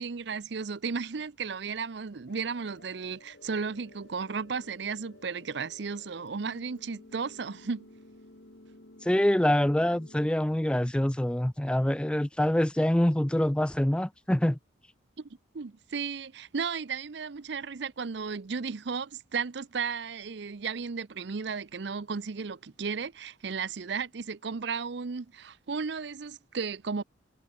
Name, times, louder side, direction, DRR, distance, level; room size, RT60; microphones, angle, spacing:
voice 1, 0.0-7.9 15.2-15.3 15.5-27.0, right 5 dB, 65° right, 0.6 m, -34 dB
sound 1, 2.3-10.3, left 1 dB, 60° left, 2.1 m, -54 dB
voice 2, 9.0-14.6, left 1 dB, 5° left, 0.4 m, -25 dB
head